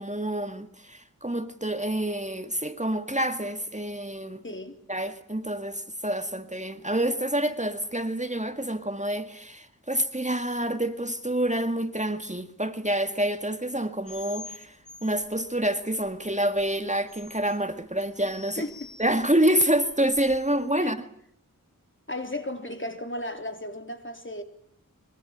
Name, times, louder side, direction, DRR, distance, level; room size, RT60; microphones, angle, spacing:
voice 1, 0.0-4.4 4.9-14.8 15.0-18.6 19.0-21.0, right 1 dB, 20° right, 1.9 m, -27 dB
voice 2, 4.4-4.8 18.6-18.9 20.8-20.9 22.1-24.4, left 1 dB, 35° left, 3.5 m, -35 dB
sound 1, 14.0-20.7, left 4 dB, 85° left, 2.5 m, -48 dB
24.0 x 23.5 x 9.0 m
wide cardioid pair, 45°, 33 cm